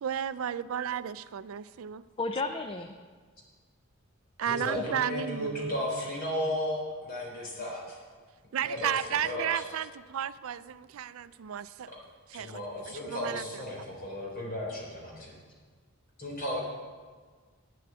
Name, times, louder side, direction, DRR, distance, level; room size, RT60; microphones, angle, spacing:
voice 1, 0.0-2.0 4.4-5.8 8.5-11.9 12.3-13.6, right 9 dB, 70° right, 15 dB, 0.4 m, -33 dB
voice 2, 2.2-2.9 4.7-5.0, left 3 dB, 25° left, 7 dB, 0.4 m, -33 dB
voice 3, 4.5-8.0 8.6-9.6 11.9-12.0 12.3-15.3 16.2-16.6, left 1 dB, 45° left, -3 dB, 3.9 m, -35 dB
9.3 x 7.6 x 8.6 m, 1.5 s
head